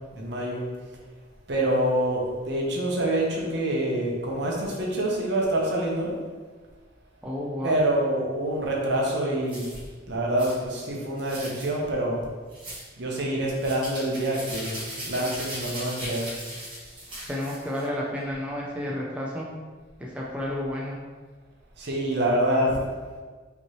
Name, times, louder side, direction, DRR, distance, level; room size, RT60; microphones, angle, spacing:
voice 1, 0.1-0.6 1.5-6.1 7.6-9.7 10.1-12.2 13.0-16.3 21.8-22.8, right 1 dB, 60° right, -2 dB, 0.9 m, -26 dB
voice 2, 7.2-7.8 17.3-19.5 20.0-21.0, left 1 dB, 5° right, -4 dB, 0.4 m, -31 dB
sound 1, 9.5-9.8 10.4-10.6 11.2-11.7 12.5-12.9 13.6-17.8, right 1 dB, 25° right, 1.5 m, -38 dB
5.2 x 3.0 x 3.0 m, 1.4 s
head